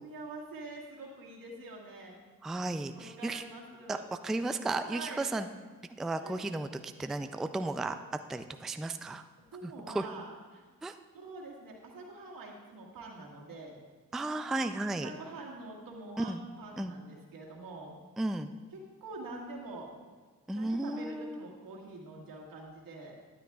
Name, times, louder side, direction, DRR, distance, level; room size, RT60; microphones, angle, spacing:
voice 1, 0.0-2.2 2.9-4.1 4.8-5.2 6.2-6.4 9.5-10.6 11.1-13.8 15.0-17.9 18.7-19.9 20.5-23.2, right 2 dB, 80° right, -2 dB, 1.9 m, -45 dB
voice 2, 2.4-3.4 3.9-4.0 4.2-5.5 6.0-8.0 8.3-9.2 9.6-10.0 10.8-11.0 14.1-15.1 16.2-16.4 16.8-16.9 18.2-18.5 20.5-21.4, right 2 dB, ahead, 9 dB, 0.3 m, -34 dB
12.0 x 10.5 x 2.4 m, 1.4 s
cardioid pair, 65°, 34 cm